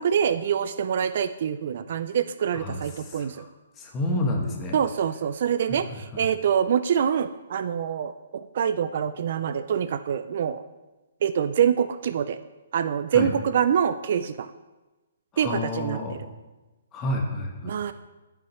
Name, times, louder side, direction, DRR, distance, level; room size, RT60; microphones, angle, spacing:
voice 1, 0.0-3.5 4.7-10.6 11.2-12.4 12.7-14.5 15.4-16.3 17.6-17.9, right 8 dB, 45° right, 12 dB, 0.3 m, -25 dB
voice 2, 2.5-3.5 3.8-4.8 5.7-6.3 13.1-13.3 15.3-16.2 16.9-17.9, left 1 dB, 15° left, 1 dB, 1.1 m, -30 dB
14.0 x 5.7 x 3.1 m, 1.1 s
hypercardioid pair, 165°, 0 cm